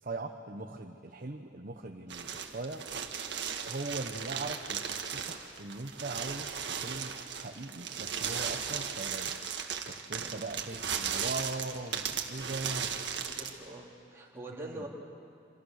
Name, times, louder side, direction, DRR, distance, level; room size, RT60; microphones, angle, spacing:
voice 1, 0.0-2.8 3.6-9.4 9.9-12.9 14.5-14.9, right 2 dB, 50° right, 3 dB, 1.1 m, -40 dB
sound 1, 2.1-13.6, right 7 dB, 65° right, 1.7 m, -36 dB
voice 2, 13.2-14.9, right 2 dB, 15° right, -4 dB, 3.0 m, -44 dB
27.0 x 27.0 x 6.6 m, 2.5 s
head